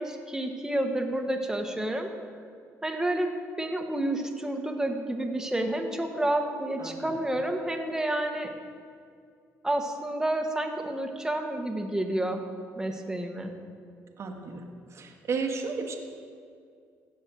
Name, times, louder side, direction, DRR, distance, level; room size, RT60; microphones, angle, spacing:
voice 1, 0.0-2.1 2.8-8.5 9.6-12.4 12.8-13.5, right 1 dB, 10° right, 3 dB, 1.5 m, -30 dB
voice 2, 6.8-7.1 14.2-14.6 14.9-16.0, right 4 dB, 50° right, 2 dB, 1.4 m, -33 dB
16.0 x 5.5 x 6.4 m, 2.3 s
supercardioid pair, 80°, 6 cm